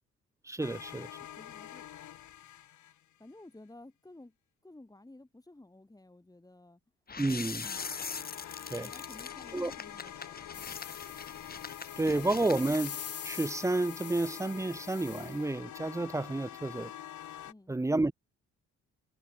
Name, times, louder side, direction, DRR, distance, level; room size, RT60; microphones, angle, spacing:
voice 1, 0.4-1.1 7.2-7.6 8.7-8.9 9.5-9.7 12.0-13.0 13.2-16.9 17.7-18.1, right 2 dB, 10° right, 0.6 m, -30 dB
sound 1, 0.6-3.3 7.6-17.5, left 12 dB, 75° left, 5.3 m, -46 dB
voice 2, 1.3-1.9 3.2-4.4 4.6-6.8 7.6-7.9 8.8-10.6 11.0-11.1 17.4-17.7, left 2 dB, 10° left, 6.6 m, -54 dB
sound 2, 7.1-12.9, left 5 dB, 30° left, 1.6 m, -43 dB
sound 3, 10.5-15.4, left 9 dB, 55° left, 2.1 m, -45 dB
cardioid pair, 90°, 30 cm